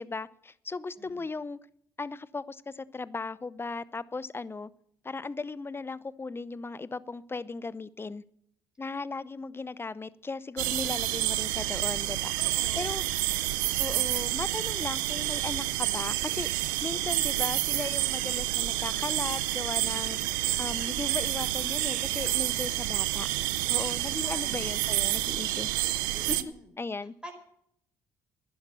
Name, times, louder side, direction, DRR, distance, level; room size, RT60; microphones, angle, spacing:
voice 1, 0.0-1.6 2.0-4.7 5.0-8.2 8.8-13.0 13.8-16.5 16.8-20.2 20.6-23.3 23.7-25.7 26.3-26.4 26.8-27.1, left 3 dB, 20° left, 19 dB, 0.7 m, -37 dB
voice 2, 0.9-1.3 11.2-11.3 12.4-13.0 22.2-22.4 23.9-24.4 24.8-25.0 26.1-26.7 27.2-27.3, equal, 10° right, 4 dB, 4.7 m, -48 dB
sound 1, 10.6-26.4, right 17 dB, 85° right, 0.6 m, -29 dB
11.0 x 10.5 x 7.0 m, 0.69 s
hypercardioid pair, 50°, 11 cm